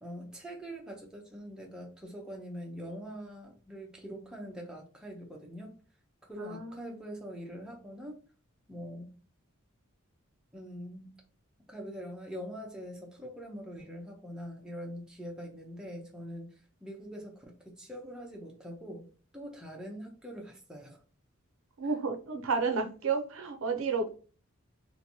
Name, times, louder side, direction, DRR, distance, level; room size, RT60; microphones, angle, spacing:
voice 1, 0.0-5.7 6.3-8.2 8.7-9.1 10.5-11.1 11.7-19.1 19.3-21.0, equal, 5° right, -1 dB, 0.6 m, -43 dB
voice 2, 6.4-7.0 21.8-24.1, right 4 dB, 70° right, 5 dB, 0.5 m, -31 dB
2.9 x 2.6 x 2.6 m, 0.38 s
head